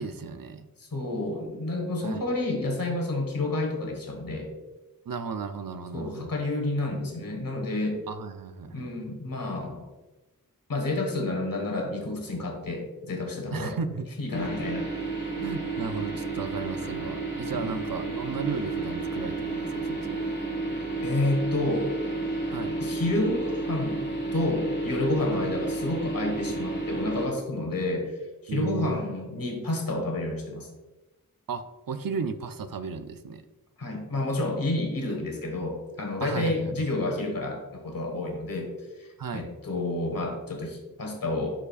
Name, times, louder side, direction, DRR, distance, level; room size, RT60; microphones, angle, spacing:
voice 1, 0.0-0.7 2.0-2.2 5.1-6.3 8.1-8.9 13.5-14.1 15.4-20.3 22.5-22.8 25.3-25.5 28.5-29.0 31.5-33.4 36.2-36.7 39.2-39.5, right 5 dB, 75° right, 10 dB, 0.6 m, -34 dB
voice 2, 0.8-4.5 5.9-8.0 8.7-9.9 10.7-13.8 14.2-14.9 17.5-17.8 21.0-21.9 22.8-24.0 24.3-28.1 28.4-30.7 33.8-38.7 39.0-41.5, left 2 dB, 70° left, 2 dB, 1.5 m, -30 dB
sound 1, 14.3-27.3, right 2 dB, 30° left, 1.7 m, -31 dB
11.5 x 5.0 x 2.4 m, 1.1 s
wide cardioid pair, 65°, 35 cm